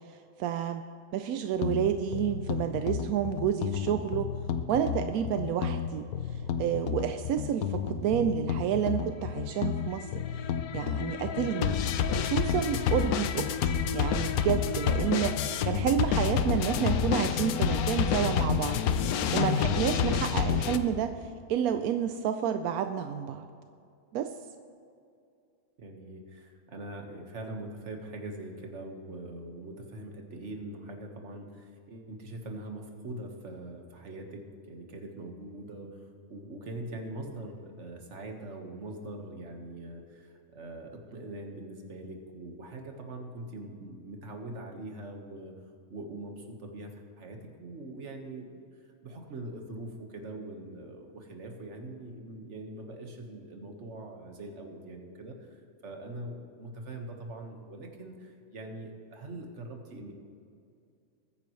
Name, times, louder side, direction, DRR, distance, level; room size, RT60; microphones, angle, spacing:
voice 1, 0.4-0.9 1.1-4.3 4.7-11.8 12.2-19.0 19.3-23.5 24.1-24.3, right 9 dB, 85° right, 8 dB, 1.1 m, -30 dB
sound 1, 1.6-20.8, left 7 dB, 90° left, 1.2 m, -29 dB
voice 2, 25.8-45.5 45.9-46.9 47.2-60.1, right 1 dB, 55° right, 3 dB, 1.7 m, -42 dB
21.0 x 9.9 x 3.2 m, 2.5 s
omnidirectional pair, 1.5 m